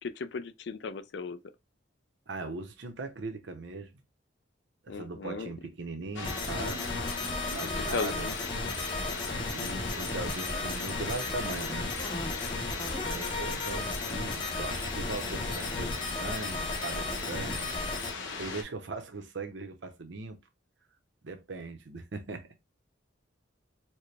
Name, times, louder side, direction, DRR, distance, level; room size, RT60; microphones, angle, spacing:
voice 1, 0.0-1.4 4.9-5.5 7.6-8.3, left 5 dB, 60° left, 0.4 m, -36 dB
voice 2, 2.3-3.9 4.8-6.8 7.4-8.3 9.5-11.9 13.0-17.7 18.4-20.4 21.2-22.5, right 3 dB, 70° right, 0.7 m, -39 dB
sound 1, 6.1-18.6, left 4 dB, 85° left, 0.9 m, -38 dB
sound 2, 6.2-18.1, left 2 dB, 25° left, 0.7 m, -35 dB
4.3 x 2.1 x 3.3 m
head